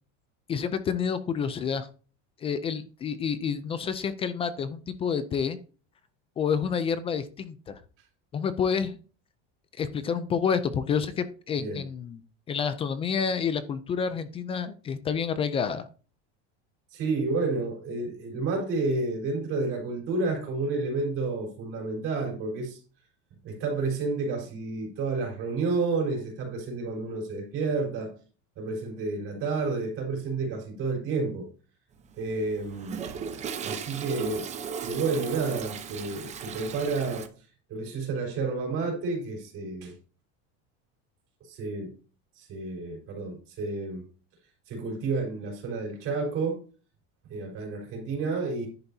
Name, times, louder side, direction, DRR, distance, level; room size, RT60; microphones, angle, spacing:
voice 1, 0.5-1.9 2.4-5.6 6.4-7.8 8.3-9.0 9.8-12.2 12.5-15.9, left 6 dB, 15° left, 0.4 m, -29 dB
voice 2, 16.9-22.8 23.4-28.1 28.6-31.5 32.2-33.1 33.6-34.5 34.8-37.3 37.7-39.9 41.5-41.9 42.4-44.0 44.7-46.6 47.3-48.7, right 3 dB, 40° right, 4.4 m, -30 dB
Toilet flush, 32.0-37.3, right 6 dB, 20° right, 0.8 m, -36 dB
10.5 x 8.7 x 2.7 m
cardioid pair, 165°, 34 cm